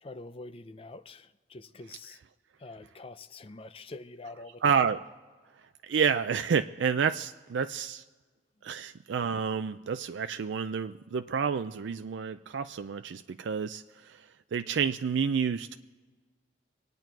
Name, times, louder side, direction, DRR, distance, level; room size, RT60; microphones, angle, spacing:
voice 1, 0.0-2.2 2.6-4.8, left 2 dB, 30° left, 12 dB, 0.5 m, -45 dB
voice 2, 4.6-5.0 5.8-8.0 8.6-14.3 14.5-15.8, right 6 dB, 80° right, 9 dB, 0.4 m, -29 dB
25.0 x 9.0 x 4.6 m, 1.4 s
head